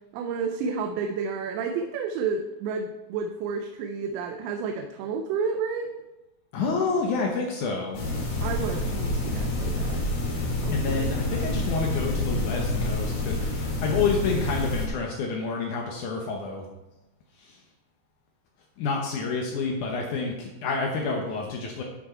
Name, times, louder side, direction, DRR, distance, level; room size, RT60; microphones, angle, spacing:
voice 1, 0.1-5.9 8.4-10.1 10.6-11.5, right 5 dB, 85° right, 6 dB, 2.8 m, -31 dB
voice 2, 6.5-8.0 10.4-10.5 10.7-16.7 17.4-17.6 18.8-21.8, left 4 dB, 85° left, 0 dB, 1.7 m, -29 dB
sound 1, 7.9-14.9, left 2 dB, 60° left, 3.8 m, -28 dB
12.0 x 6.3 x 4.4 m, 1.0 s
omnidirectional pair, 5.0 m